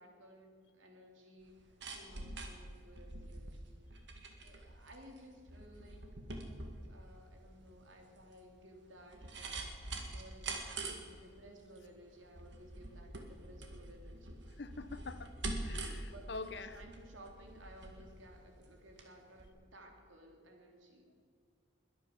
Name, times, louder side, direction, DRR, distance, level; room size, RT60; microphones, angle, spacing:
voice 1, 0.0-3.6 4.4-6.0 6.9-9.5 10.0-14.6 16.0-21.2, right 1 dB, 75° right, 2 dB, 3.1 m, -57 dB
sound 1, 1.4-19.1 19.4-19.5, right 2 dB, 60° right, 2.0 m, -45 dB
voice 2, 14.6-15.3 15.7-16.7, left 3 dB, 55° left, 12 dB, 0.8 m, -45 dB
21.5 x 9.4 x 7.0 m, 2.2 s
head